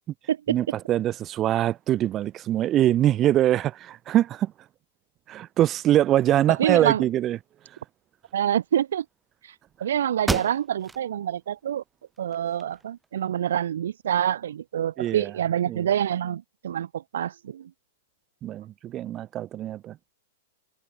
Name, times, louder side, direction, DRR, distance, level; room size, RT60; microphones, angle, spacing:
voice 1, 0.5-4.5 5.3-7.4 15.0-15.3 15.7-15.8 18.4-20.0, right 12 dB, 20° right, 1.1 m, -23 dB
voice 2, 6.5-7.0 8.3-9.0 9.4-9.5 9.8-11.8 12.2-17.7, right 10 dB, 75° right, 1.3 m, -26 dB
sound 1, 9.7-9.8 10.2-11.1 11.5-11.6 12.2-13.1, right 3 dB, 5° right, 3.7 m, -32 dB
hypercardioid pair, 160°, 0 cm